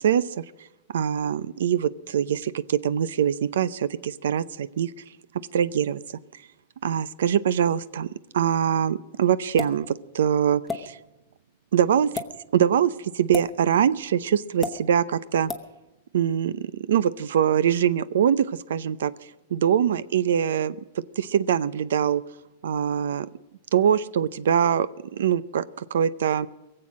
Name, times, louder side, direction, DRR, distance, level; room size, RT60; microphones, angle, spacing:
voice 1, 0.0-0.4 0.9-4.9 5.5-6.0 6.8-8.1 8.3-11.0 11.7-12.1 12.5-15.5 16.1-19.1 19.5-20.8 21.2-22.2 22.6-23.3 23.7-26.5, right 9 dB, 90° right, 18 dB, 0.6 m, -23 dB
sound 1, 9.6-9.8 10.7-10.8 12.0-12.3 13.3-13.5 14.6-14.8 15.5-15.7, left 3 dB, 5° left, 0.9 m, -30 dB
22.5 x 7.7 x 6.2 m, 1.0 s
supercardioid pair, 170°, 0 cm